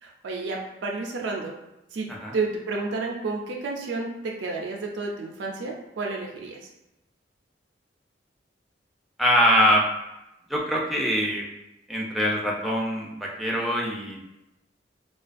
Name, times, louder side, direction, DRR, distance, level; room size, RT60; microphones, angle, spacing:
voice 1, 0.0-1.5 1.9-2.1 2.3-6.7, right 3 dB, 75° right, -1 dB, 0.4 m, -31 dB
voice 2, 9.2-9.8 10.5-11.4 11.9-14.3, equal, ahead, -3 dB, 0.3 m, -23 dB
2.4 x 2.2 x 2.4 m, 0.91 s
head